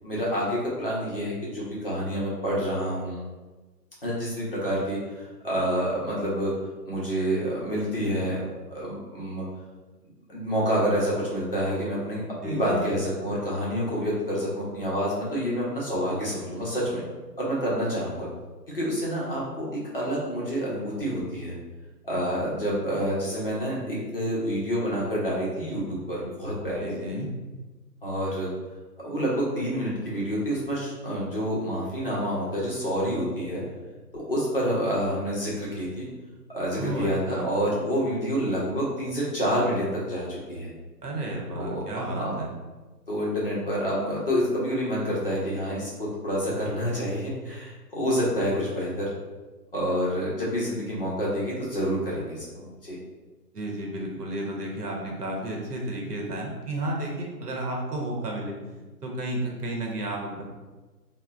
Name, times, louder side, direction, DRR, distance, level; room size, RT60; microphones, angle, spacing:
voice 1, 0.0-3.2 4.0-6.5 6.9-9.4 10.3-17.0 17.4-18.3 18.7-21.6 22.0-26.9 28.0-28.5 29.0-33.6 34.1-36.1 36.5-40.7 41.6-42.4 43.1-49.1 49.7-53.0, equal, 35° left, -6 dB, 0.6 m, -28 dB
voice 2, 12.4-13.0 26.8-27.3 36.8-37.5 41.0-42.5 53.5-58.6 59.0-60.4, right 1 dB, 70° right, -1 dB, 0.8 m, -32 dB
3.6 x 2.1 x 2.3 m, 1.3 s
hypercardioid pair, 160°, 49 cm